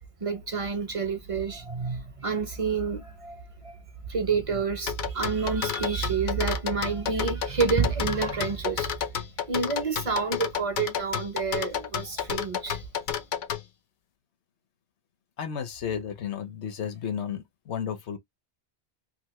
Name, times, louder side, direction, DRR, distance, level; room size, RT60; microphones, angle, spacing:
voice 1, 0.2-3.8 4.1-9.1 9.5-12.8, right 5 dB, 35° right, 0.6 m, -29 dB
sound 1, 4.9-13.6, left 9 dB, 60° left, 0.5 m, -30 dB
voice 2, 15.4-18.2, left 8 dB, 75° left, 1.0 m, -33 dB
2.8 x 2.5 x 3.0 m
omnidirectional pair, 1.2 m